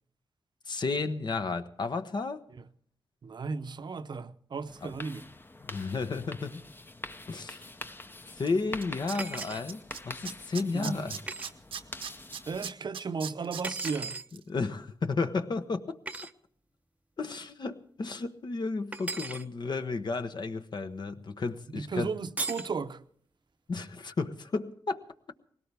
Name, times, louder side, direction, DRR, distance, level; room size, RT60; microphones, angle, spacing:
voice 1, 0.7-2.4 4.8-4.9 5.6-6.6 7.3-7.6 8.3-11.2 14.5-16.0 17.2-22.1 23.7-25.0, left 4 dB, 55° left, 1.1 m, -33 dB
voice 2, 3.2-5.3 10.7-11.0 12.5-14.2 21.7-23.0, right 4 dB, 55° right, 0.7 m, -35 dB
sound 1, 4.7-12.7, left 2 dB, 25° left, 0.8 m, -45 dB
Tools, 8.5-8.6 8.8-10.0 10.2-13.9 14.3-14.4, right 7 dB, 90° right, 0.9 m, -38 dB
sound 2, 9.1-9.6 11.3-11.5 13.6-14.3 16.1-16.3 18.9-19.4 22.4-22.7, right 2 dB, 15° right, 0.6 m, -36 dB
20.0 x 17.5 x 3.5 m
cardioid pair, 65°, 9 cm